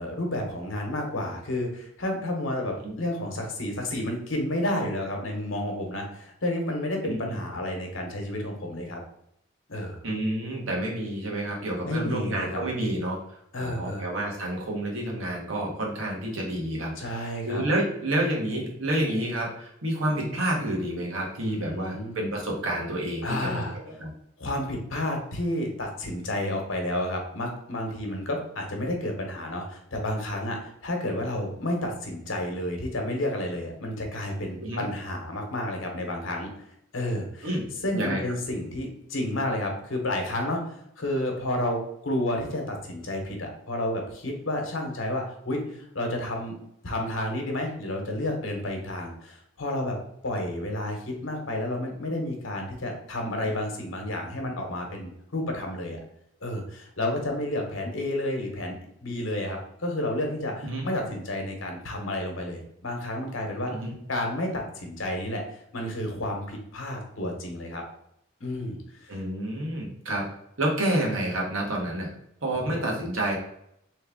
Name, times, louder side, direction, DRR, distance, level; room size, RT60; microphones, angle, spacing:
voice 1, 0.0-9.0 9.7-10.0 11.8-12.6 13.5-14.0 17.0-17.6 21.4-22.2 23.2-23.8 24.4-36.5 36.9-37.5 37.8-40.6 41.0-50.0 50.2-56.0 56.4-63.7 64.1-65.4 65.7-67.8 68.4-69.2 72.7-72.8, left 1 dB, 75° left, 2 dB, 1.0 m, -31 dB
voice 2, 7.0-7.4 10.0-13.2 13.6-24.1 34.6-34.8 37.4-37.7 37.9-38.2 60.6-60.8 63.7-63.9 69.1-70.2 70.6-72.1 72.4-73.3, right 1 dB, 80° right, -1 dB, 1.2 m, -29 dB
3.5 x 3.2 x 3.5 m, 0.76 s
head